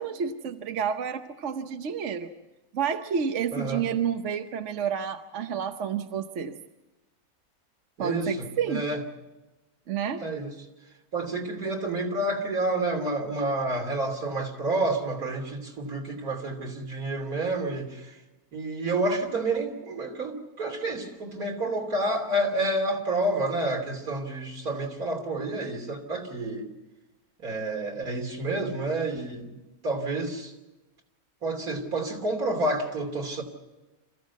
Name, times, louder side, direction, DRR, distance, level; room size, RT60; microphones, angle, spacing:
voice 1, 0.0-2.3 2.7-6.5 8.0-8.8 9.9-10.2, right 7 dB, 55° right, 7 dB, 1.1 m, -30 dB
voice 2, 3.5-3.8 8.0-9.0 10.2-10.5 11.1-18.2 18.5-26.7 27.4-29.6 29.8-30.5 31.4-33.4, right 2 dB, 75° right, 3 dB, 3.4 m, -29 dB
26.5 x 15.0 x 8.2 m, 1.1 s
omnidirectional pair, 1.6 m